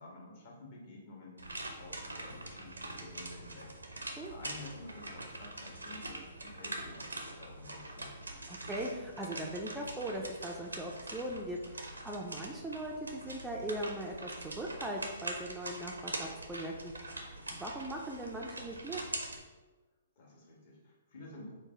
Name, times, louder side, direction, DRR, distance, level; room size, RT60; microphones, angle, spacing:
voice 1, 0.0-3.7 4.3-8.2 20.2-21.5, left 2 dB, 50° left, -3 dB, 1.3 m, -51 dB
sound 1, 1.4-19.4, right 2 dB, 85° right, 0.6 m, -44 dB
voice 2, 8.5-19.0, right 1 dB, 10° right, -1 dB, 0.4 m, -40 dB
4.7 x 2.1 x 3.7 m, 1.3 s
figure-of-eight pair, 125°, 0 cm